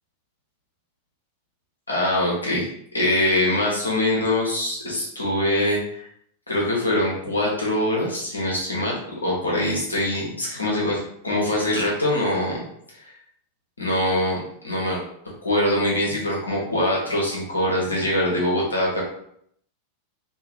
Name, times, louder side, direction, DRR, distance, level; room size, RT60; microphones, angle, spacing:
voice 1, 1.9-2.7 2.9-6.0 6.5-12.6 13.0-13.1 13.8-15.0 15.4-19.0, left 1 dB, 80° left, -4 dB, 1.0 m, -23 dB
2.8 x 2.6 x 2.9 m, 0.69 s
figure-of-eight pair, 90°, 0 cm